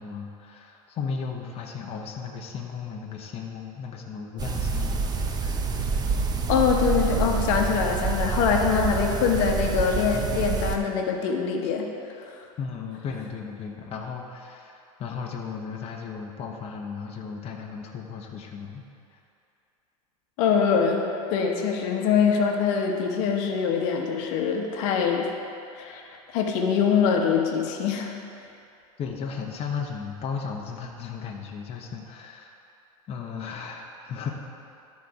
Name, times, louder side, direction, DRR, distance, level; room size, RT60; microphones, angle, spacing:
voice 1, 0.0-5.1 5.4-5.6 12.6-18.9 19.1-19.2 29.0-32.5 33.1-34.3, left 6 dB, 35° left, 0 dB, 0.9 m, -35 dB
sound 1, 4.4-10.8, right 5 dB, 20° right, 0.7 m, -27 dB
voice 2, 6.5-11.9 20.4-25.3 25.7-28.1, left 6 dB, 60° left, 2 dB, 1.0 m, -24 dB
12.5 x 4.2 x 4.8 m, 2.6 s
hypercardioid pair, 105°, 19 cm